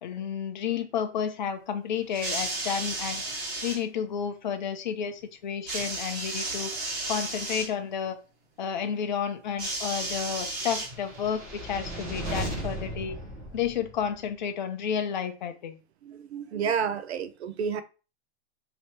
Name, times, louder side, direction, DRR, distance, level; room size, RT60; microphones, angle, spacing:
voice 1, 0.0-3.2 3.6-6.7 7.1-8.2 8.6-13.2 13.5-15.8, left 8 dB, 40° left, 0.6 m, -31 dB
sound 1, 2.1-3.8 5.7-7.7 9.6-11.3 12.2-12.3, right 2 dB, 30° right, 1.5 m, -33 dB
sound 2, 10.8-14.2, right 1 dB, 15° right, 0.7 m, -36 dB
voice 2, 16.0-17.8, right 6 dB, 65° right, 0.6 m, -30 dB
3.3 x 2.9 x 4.3 m
hypercardioid pair, 180°, 35 cm